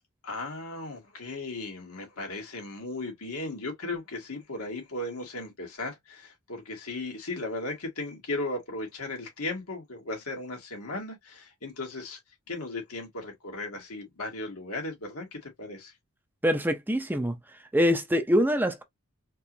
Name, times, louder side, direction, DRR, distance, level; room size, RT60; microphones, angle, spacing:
voice 1, 0.2-12.2 12.5-15.9, left 2 dB, 85° left, 2.1 m, -36 dB
voice 2, 16.4-17.4 17.7-18.8, equal, 10° right, 0.6 m, -24 dB
4.5 x 3.1 x 2.6 m
head